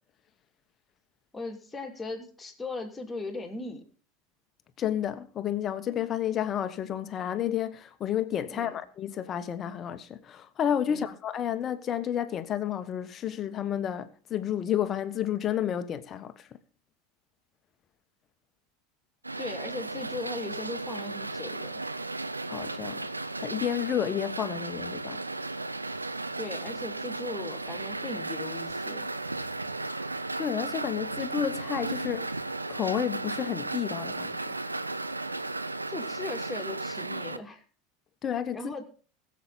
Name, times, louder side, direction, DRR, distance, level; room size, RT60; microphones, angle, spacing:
voice 1, 1.3-3.9 8.5-8.8 10.9-11.1 19.4-21.9 26.4-29.1 35.9-37.6 38.5-38.8, left 3 dB, 15° left, 2.9 m, -38 dB
voice 2, 4.8-16.5 22.5-23.1 23.4-25.2 30.4-32.3 32.7-34.5 38.2-38.6, left 10 dB, 35° left, 1.2 m, -31 dB
sound 1, 19.2-37.4, right 2 dB, 90° right, 0.6 m, -35 dB
21.0 x 7.4 x 4.1 m
figure-of-eight pair, 80°, 0 cm